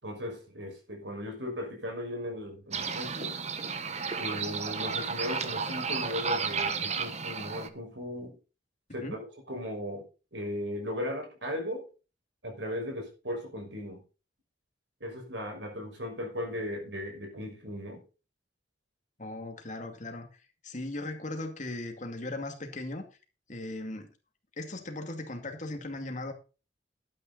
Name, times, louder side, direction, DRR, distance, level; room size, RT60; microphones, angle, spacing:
voice 1, 0.0-3.4 4.1-8.4 8.9-10.0 10.3-11.8 12.4-14.0 15.0-18.0, left 1 dB, 90° right, 5.6 m, -37 dB
sound 1, 2.7-7.7, right 5 dB, 40° right, 1.2 m, -33 dB
voice 2, 19.2-20.3 20.6-23.0 23.5-24.1 24.6-26.3, left 2 dB, 45° left, 2.4 m, -38 dB
12.0 x 9.4 x 4.1 m
head